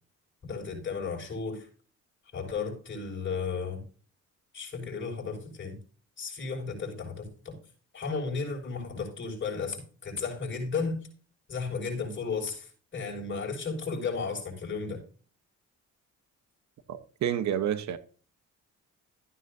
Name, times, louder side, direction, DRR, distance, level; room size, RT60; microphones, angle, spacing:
voice 1, 0.4-1.7 2.3-3.8 4.5-5.8 6.2-7.6 7.9-11.0 11.5-15.0, left 4 dB, 40° left, 6.1 m, -34 dB
voice 2, 16.9-18.0, right 9 dB, 65° right, 1.1 m, -29 dB
14.0 x 9.5 x 2.7 m
cardioid pair, 90°, 30 cm